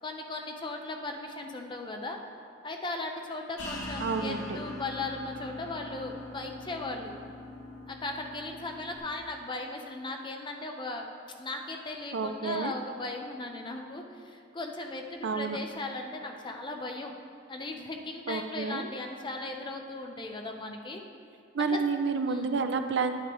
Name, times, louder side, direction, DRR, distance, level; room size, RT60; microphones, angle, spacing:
voice 1, 0.0-2.2 2.6-7.1 7.9-11.1 11.4-17.1 17.5-21.0 21.7-21.8 22.2-22.5, left 2 dB, 25° left, 3 dB, 0.7 m, -37 dB
sound 1, 3.6-9.0, left 1 dB, 80° left, 1.8 m, -42 dB
voice 2, 4.0-4.6 12.1-12.7 15.2-15.6 18.3-18.9 21.5-23.1, right 4 dB, 65° right, 8 dB, 0.5 m, -30 dB
9.4 x 9.1 x 3.1 m, 2.6 s
head